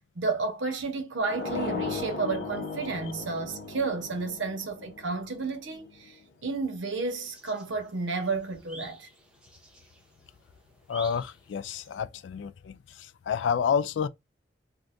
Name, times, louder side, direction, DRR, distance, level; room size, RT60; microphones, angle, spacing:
voice 1, 0.0-9.1, right 4 dB, 85° right, 1.0 m, -32 dB
sound 1, 1.3-6.0, left 4 dB, 60° left, 0.9 m, -36 dB
sound 2, 6.9-12.0, right 1 dB, 5° right, 0.8 m, -51 dB
voice 2, 10.9-12.7 13.3-14.1, left 7 dB, 75° left, 0.3 m, -28 dB
3.4 x 2.5 x 2.5 m
head